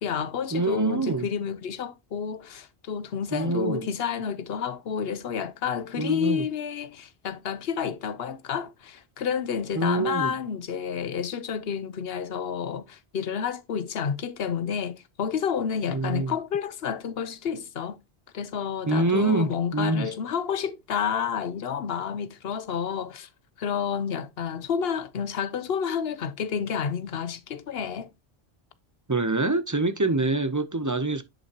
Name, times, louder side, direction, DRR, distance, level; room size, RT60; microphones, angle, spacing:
voice 1, 0.0-18.0 18.3-23.3 23.6-28.1, left 7 dB, 70° left, 1.0 m, -30 dB
voice 2, 0.5-1.3 3.3-3.9 6.0-6.4 9.7-10.3 15.9-16.3 18.9-20.1 29.1-31.2, right 2 dB, 20° right, 0.6 m, -25 dB
10.0 x 5.6 x 2.8 m
omnidirectional pair, 1.1 m